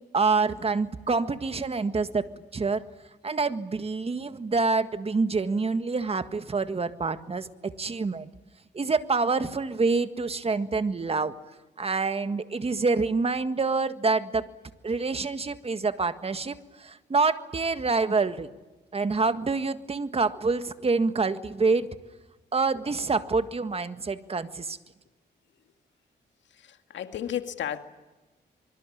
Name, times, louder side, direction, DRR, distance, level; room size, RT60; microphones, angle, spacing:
voice 1, 0.0-2.8 3.2-8.3 8.7-11.3 11.8-14.5 14.8-16.6 16.8-18.5 18.9-21.9 22.5-24.8, right 4 dB, 35° right, 10 dB, 1.7 m, -26 dB
voice 2, 26.5-27.8, left 10 dB, 85° left, 8 dB, 2.1 m, -33 dB
25.0 x 24.0 x 9.9 m, 1.2 s
cardioid pair, 100°, 19 cm